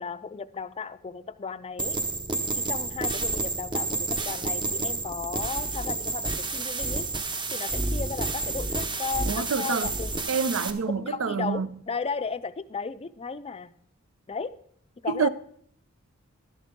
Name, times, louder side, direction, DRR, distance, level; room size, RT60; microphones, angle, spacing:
voice 1, 0.0-2.0 2.6-7.1 7.5-10.3 11.0-13.7 14.3-14.5 15.0-15.3, left 5 dB, 30° left, 0.4 m, -35 dB
sound 1, 1.8-10.7, right 2 dB, 20° right, 0.8 m, -30 dB
voice 2, 9.3-9.9 10.3-11.8 15.1-15.3, right 5 dB, 65° right, 0.5 m, -27 dB
12.0 x 10.5 x 3.7 m
head